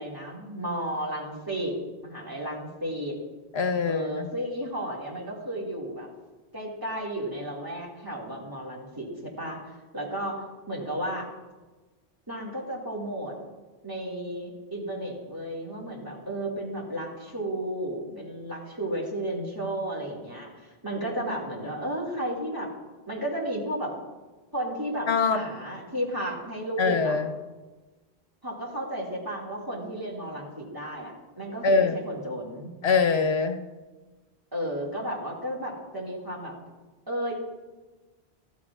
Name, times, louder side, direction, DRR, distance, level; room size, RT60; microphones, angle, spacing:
voice 1, 0.0-3.2 3.9-6.1 6.5-9.6 9.9-11.3 12.3-13.4 13.8-22.7 23.1-24.0 24.5-27.2 28.4-32.7 34.5-36.5 37.1-37.3, right 1 dB, 20° right, -3 dB, 2.2 m, -33 dB
voice 2, 3.5-4.3 25.1-25.4 26.8-27.3 31.6-32.0 32.8-33.6, left 4 dB, 75° left, 5 dB, 1.2 m, -23 dB
15.0 x 13.0 x 2.4 m, 1.2 s
omnidirectional pair, 1.1 m